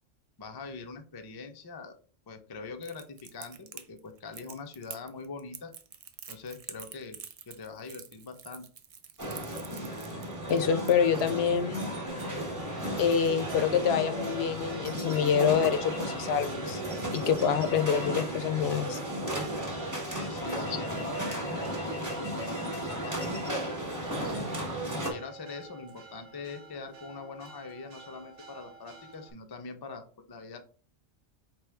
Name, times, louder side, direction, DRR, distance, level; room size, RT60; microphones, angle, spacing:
voice 1, 0.4-2.0 2.3-5.7 6.3-7.2 7.5-8.7 20.1-23.4 24.1-24.6 24.9-30.6, left 4 dB, 35° left, 6 dB, 0.4 m, -43 dB
Crackle, 2.8-11.3, right 7 dB, 65° right, 0.3 m, -47 dB
sound 1, 9.2-25.1, equal, 20° right, 0.9 m, -34 dB
voice 2, 10.5-11.8 13.0-16.8 17.1-19.0, left 7 dB, 70° left, 10 dB, 0.8 m, -26 dB
Church bell, 12.1-29.3, right 5 dB, 90° right, 1.1 m, -50 dB
4.7 x 3.3 x 3.4 m, 0.40 s
omnidirectional pair, 1.2 m